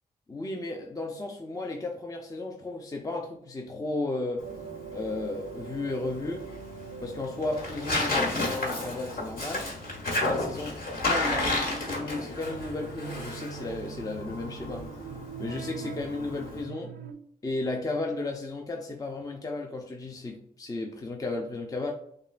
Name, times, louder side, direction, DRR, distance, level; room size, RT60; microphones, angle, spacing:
voice 1, 0.3-4.4 4.9-6.5 7.0-9.7 10.2-10.7 11.1-14.9 15.4-16.9 17.4-21.9, left 2 dB, 20° left, 2 dB, 0.5 m, -34 dB
Tearing, 4.4-16.6, left 2 dB, 65° left, 1.4 m, -32 dB
sound 1, 4.4-17.1, right 7 dB, 90° right, 0.4 m, -44 dB
6.4 x 2.2 x 2.4 m, 0.69 s
cardioid pair, 80°, 16 cm